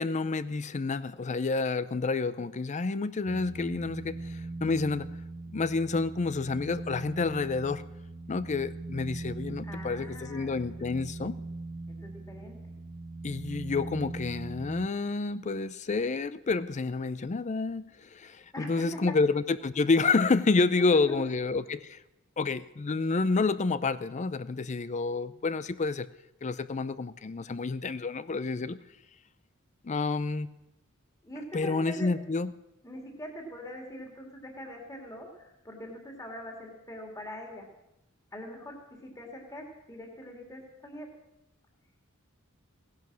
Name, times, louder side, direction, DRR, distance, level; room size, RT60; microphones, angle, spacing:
voice 1, 0.0-5.1 5.5-7.8 8.3-11.4 13.2-22.0 22.4-26.1 26.4-28.8 29.8-30.5 31.5-32.5, left 3 dB, 35° left, 15 dB, 0.5 m, -29 dB
sound 1, 3.3-14.9, right 2 dB, 35° right, 0.8 m, -41 dB
voice 2, 9.6-11.0 12.0-12.7 18.5-19.2 20.8-21.3 31.2-32.1 32.8-37.7 38.3-41.1, equal, 15° left, 1 dB, 2.6 m, -42 dB
16.5 x 10.5 x 6.2 m, 0.90 s
head